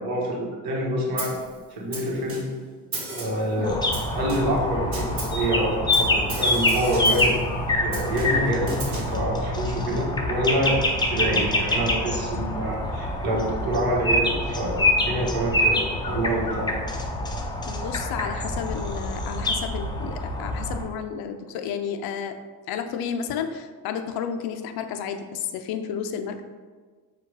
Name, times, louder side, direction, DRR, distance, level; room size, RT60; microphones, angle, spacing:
voice 1, 0.0-1.4 1.7-2.4 3.1-3.8 4.1-7.3 7.7-16.7, right 1 dB, 75° right, -4 dB, 1.4 m, -27 dB
Snare drum, 1.2-1.5 1.9-2.6 2.9-3.5 3.9-4.6 4.9-5.4 5.9-7.4 7.9-9.2, right 3 dB, 35° right, 1.3 m, -35 dB
sound 1, 3.6-20.8, left 1 dB, 15° left, 0.4 m, -26 dB
voice 2, 17.7-22.4 22.7-26.4, left 7 dB, 80° left, 7 dB, 0.5 m, -31 dB
4.8 x 2.3 x 4.7 m, 1.4 s
cardioid pair, 125°, 37 cm